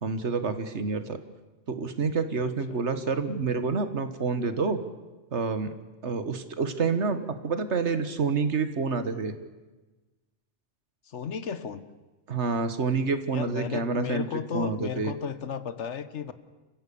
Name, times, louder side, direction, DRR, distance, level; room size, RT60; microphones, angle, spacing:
voice 1, 0.0-1.2 1.7-4.8 5.3-5.7 6.0-9.3 12.3-14.2 14.5-15.1, right 4 dB, 70° right, 10 dB, 1.7 m, -28 dB
voice 2, 11.0-11.8 13.3-16.3, left 7 dB, 75° left, 13 dB, 1.3 m, -34 dB
29.0 x 15.5 x 7.0 m, 1.2 s
omnidirectional pair, 1.2 m